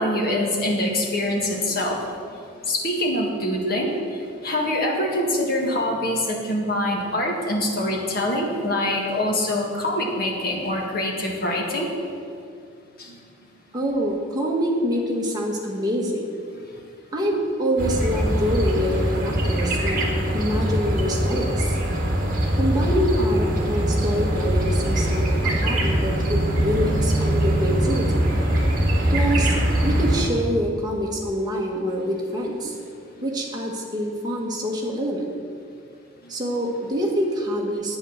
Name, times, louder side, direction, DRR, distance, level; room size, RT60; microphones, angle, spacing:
voice 1, 0.0-2.0 2.7-4.0 4.4-11.9 13.0-13.1 16.5-16.6 19.3-19.4, left 1 dB, 50° left, -1 dB, 1.8 m, -24 dB
voice 2, 13.7-16.3 17.1-20.1 20.3-21.8 22.6-28.3 29.1-29.5 29.8-32.7 33.2-35.3 36.3-38.0, equal, 20° right, -2 dB, 1.5 m, -25 dB
sound 1, 17.8-30.3, right 1 dB, 40° right, 1.7 m, -22 dB
8.9 x 8.7 x 6.4 m, 2.4 s
head